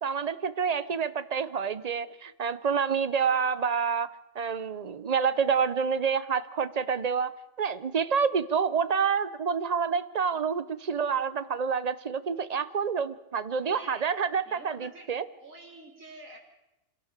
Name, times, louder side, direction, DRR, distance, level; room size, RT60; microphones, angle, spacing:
voice 1, 0.0-4.1 4.3-7.3 7.6-15.3, right 6 dB, 35° right, 14 dB, 0.8 m, -28 dB
voice 2, 13.6-14.2 14.4-15.1 15.4-16.4, right 1 dB, 85° right, 0 dB, 3.5 m, -47 dB
26.0 x 17.0 x 6.7 m, 0.97 s
omnidirectional pair, 1.3 m